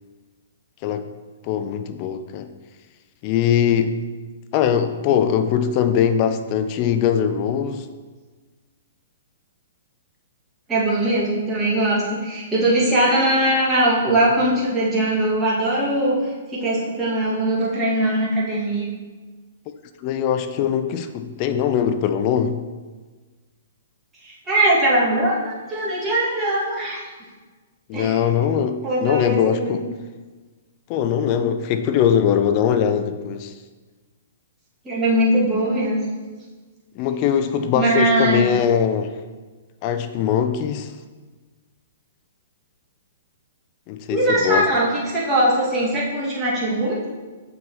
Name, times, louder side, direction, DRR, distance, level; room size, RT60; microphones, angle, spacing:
voice 1, 1.4-2.5 3.2-4.0 4.5-7.9 20.0-22.6 27.9-29.9 30.9-33.5 37.0-39.1 39.8-40.9 43.9-44.7, left 8 dB, 35° left, 9 dB, 0.4 m, -21 dB
voice 2, 10.7-16.2 16.5-18.9 24.2-27.0 27.9-28.2 28.8-29.8 34.8-36.0 37.7-38.5 44.1-47.1, right 1 dB, 15° right, -6 dB, 2.0 m, -21 dB
7.0 x 6.0 x 3.0 m, 1.3 s
figure-of-eight pair, 115°, 0 cm